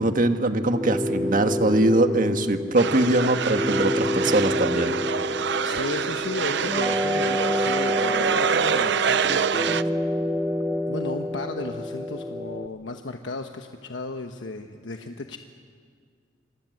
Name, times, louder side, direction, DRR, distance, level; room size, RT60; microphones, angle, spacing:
voice 1, 0.0-5.0, right 2 dB, 50° right, 7 dB, 1.6 m, -22 dB
sound 1, 0.7-12.7, left 1 dB, 10° right, 1.0 m, -28 dB
sound 2, 2.8-9.8, right 6 dB, 70° right, 0.7 m, -26 dB
voice 2, 5.6-9.8 10.9-15.4, left 2 dB, 85° left, 5 dB, 1.2 m, -35 dB
27.5 x 25.0 x 7.9 m, 2.1 s
head